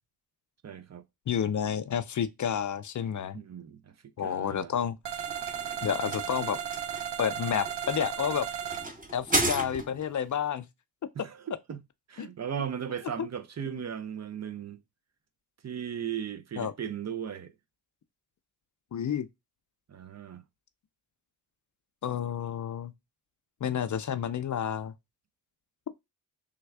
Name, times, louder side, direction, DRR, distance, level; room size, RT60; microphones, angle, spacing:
voice 1, 0.6-1.0 3.3-3.9 4.2-4.7 11.2-11.8 12.1-14.8 15.6-17.5 19.9-20.4, right 8 dB, 40° right, 0.5 m, -37 dB
voice 2, 1.3-3.4 4.2-5.2 5.8-6.6 7.2-8.5 9.1-10.7 12.2-12.3 13.2-13.3 16.6-16.7 18.9-19.3 22.0-22.9 23.6-24.9, left 8 dB, 45° left, 0.5 m, -30 dB
sound 1, 5.0-8.9, right 9 dB, 80° right, 0.6 m, -35 dB
sound 2, 5.1-10.2, right 1 dB, 20° right, 0.9 m, -34 dB
3.4 x 2.3 x 3.3 m
cardioid pair, 55°, 41 cm